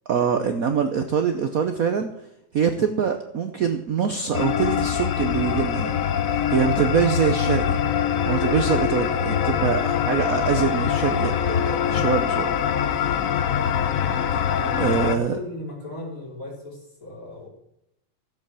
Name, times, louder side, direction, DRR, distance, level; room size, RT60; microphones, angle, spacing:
voice 1, 0.1-2.1 2.5-6.0 6.3-7.8 8.3-12.5 13.0-13.1 14.8-15.4, right 7 dB, 55° right, 7 dB, 1.1 m, -24 dB
sound 1, 4.3-15.2, left 8 dB, 65° left, 0.8 m, -23 dB
voice 2, 14.5-17.5, left 1 dB, 40° left, -3 dB, 4.6 m, -37 dB
14.0 x 7.9 x 7.5 m, 0.81 s
omnidirectional pair, 2.3 m